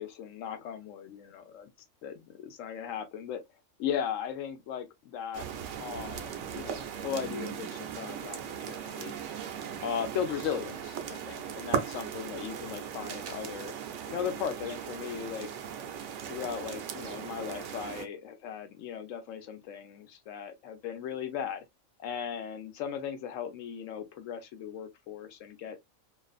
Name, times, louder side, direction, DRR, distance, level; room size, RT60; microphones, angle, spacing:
voice 1, 0.0-1.7 2.0-3.4 3.8-5.5 5.8-9.2 9.8-13.7 14.1-15.5 16.3-21.6 22.0-25.8, left 8 dB, 75° left, 0.9 m, -37 dB
sound 1, 5.3-18.1, right 8 dB, 70° right, 0.8 m, -38 dB
2.5 x 2.4 x 2.3 m
omnidirectional pair, 1.4 m